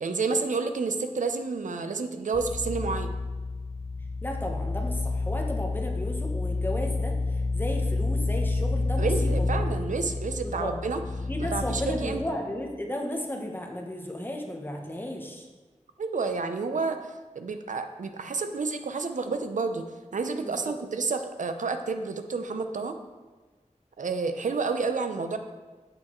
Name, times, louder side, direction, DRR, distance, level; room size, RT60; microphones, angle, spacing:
voice 1, 0.0-3.1 9.0-12.2 16.0-19.8 20.1-23.0 24.0-25.4, right 4 dB, 85° right, 7 dB, 0.4 m, -30 dB
sound 1, 2.3-12.3, left 3 dB, 50° left, 0.6 m, -29 dB
voice 2, 4.2-9.4 10.4-10.7 11.3-15.5 20.4-20.5, left 1 dB, 15° left, 1 dB, 0.9 m, -34 dB
6.3 x 6.2 x 3.0 m, 1.3 s
wide cardioid pair, 65°, 13 cm